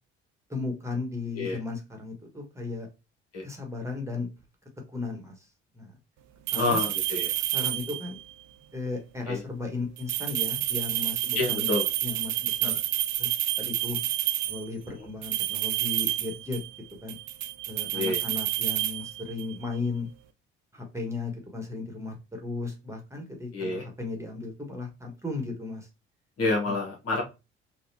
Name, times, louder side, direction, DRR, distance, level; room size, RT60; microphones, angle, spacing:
voice 1, 0.5-2.9 3.4-4.3 4.9-5.4 5.7-6.0 6.5-6.8 7.5-8.2 8.7-11.7 12.0-12.8 13.2-13.3 13.6-14.0 14.5-16.6 17.0-17.2 17.7-20.1 20.7-25.9 26.7-26.8, left 3 dB, 10° right, 1 dB, 1.4 m, -35 dB
voice 2, 6.5-7.3 9.3-9.4 11.3-11.9 12.6-12.8 14.9-15.1 17.9-18.2 23.5-23.8 26.4-27.2, left 3 dB, 50° left, 0 dB, 1.4 m, -28 dB
sound 1, 6.5-8.2 10.0-14.7 15.2-16.8 17.1-19.6, right 14 dB, 65° right, 0.5 m, -29 dB
4.1 x 2.4 x 2.7 m, 0.27 s
hypercardioid pair, 55°, 31 cm